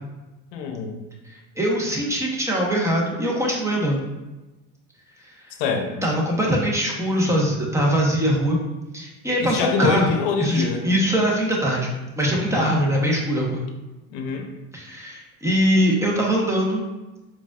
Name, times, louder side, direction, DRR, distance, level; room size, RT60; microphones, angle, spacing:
voice 1, 0.5-1.0 5.6-6.0 9.4-10.9 12.5-12.8 14.1-14.5, left 5 dB, 75° left, 3 dB, 0.8 m, -25 dB
voice 2, 1.6-4.0 6.0-8.6 8.9-11.9 12.2-13.6 14.7-16.8, equal, 5° right, -2 dB, 1.0 m, -22 dB
4.7 x 2.6 x 2.5 m, 1.1 s
supercardioid pair, 80°, 42 cm